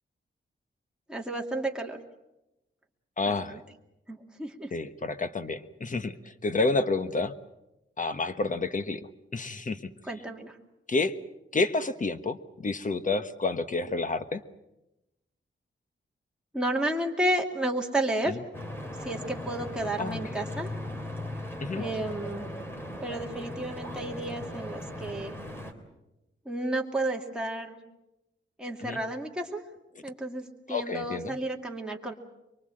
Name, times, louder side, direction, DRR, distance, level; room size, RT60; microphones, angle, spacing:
voice 1, 1.1-2.0 3.2-3.6 4.1-4.7 10.0-10.6 16.5-18.4 19.0-20.7 21.7-22.5 23.0-25.4 26.5-27.8 28.6-29.6 30.0-32.1, right 1 dB, 5° right, 0 dB, 2.4 m, -32 dB
voice 2, 3.2-3.6 4.7-7.3 8.0-9.0 9.3-9.8 10.9-11.1 11.5-14.4 18.3-18.4 20.0-20.2 21.6-21.8 28.8-29.0 30.7-31.3, left 3 dB, 40° left, 11 dB, 1.2 m, -29 dB
Stream / Boat Water vehicle, 18.5-25.7, left 1 dB, 10° left, 3.2 m, -38 dB
24.0 x 23.5 x 7.7 m, 0.93 s
wide cardioid pair, 125°, 20 cm